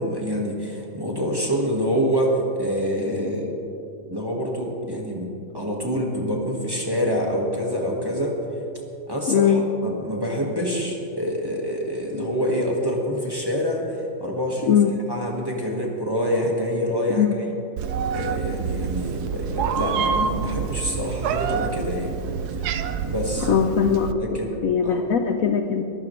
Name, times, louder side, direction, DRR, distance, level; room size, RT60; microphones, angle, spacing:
voice 1, 0.0-3.6 4.1-8.4 9.1-14.7 15.1-17.2 18.1-22.1 23.0-23.5 24.2-24.6 24.8-25.0, equal, 10° right, -2 dB, 1.5 m, -26 dB
voice 2, 9.3-9.6 14.7-14.9 17.1-17.6 23.5-24.2 24.6-25.8, left 7 dB, 65° left, 6 dB, 0.8 m, -20 dB
Meow, 17.8-24.1, right 6 dB, 65° right, 1.0 m, -27 dB
22.5 x 15.0 x 3.2 m, 2.9 s
omnidirectional pair, 2.3 m